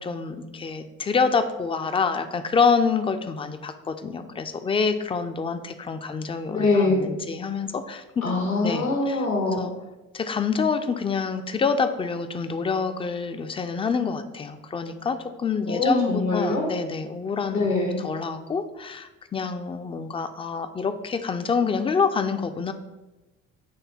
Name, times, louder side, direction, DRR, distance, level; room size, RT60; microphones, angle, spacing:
voice 1, 0.0-8.2 8.6-9.2 9.6-9.7 10.1-17.7 18.0-22.7, left 5 dB, 15° left, 9 dB, 0.4 m, -26 dB
voice 2, 6.5-7.1 8.2-9.6 15.7-16.7 17.5-18.0, left 2 dB, 90° left, 0 dB, 1.5 m, -23 dB
8.1 x 3.3 x 4.3 m, 1.1 s
figure-of-eight pair, 50°, 41 cm